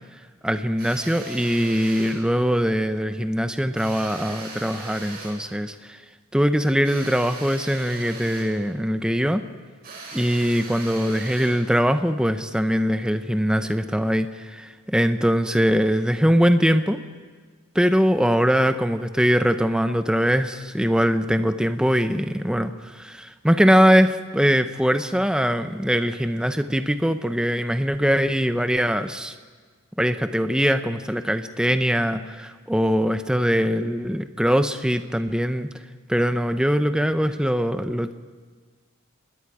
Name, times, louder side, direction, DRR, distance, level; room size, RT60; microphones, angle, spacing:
voice 1, 0.4-6.0 6.3-9.4 10.1-17.0 17.7-29.3 30.0-35.7 36.1-38.1, equal, 5° right, 9 dB, 0.7 m, -22 dB
sound 1, 0.8-2.2 3.7-5.4 6.8-8.6 9.8-11.6, right 3 dB, 45° right, 6.2 m, -39 dB
27.5 x 21.0 x 4.9 m, 1.5 s
head